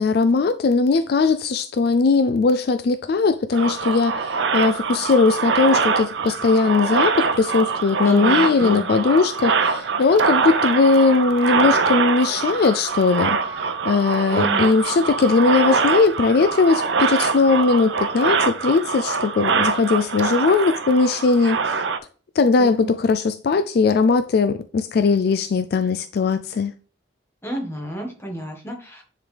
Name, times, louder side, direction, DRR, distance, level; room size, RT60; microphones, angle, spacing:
voice 1, 0.0-13.4 13.8-21.7 22.4-26.7, left 4 dB, 55° left, 0.3 m, -19 dB
sound 1, 3.5-22.0, right 5 dB, 70° right, 0.7 m, -23 dB
voice 2, 8.0-8.9 14.3-14.7 22.5-22.9 27.4-29.0, right 1 dB, 15° left, 1.5 m, -30 dB
Mallet percussion, 13.3-15.1, right 3 dB, 25° right, 2.0 m, -40 dB
9.9 x 3.9 x 3.3 m
head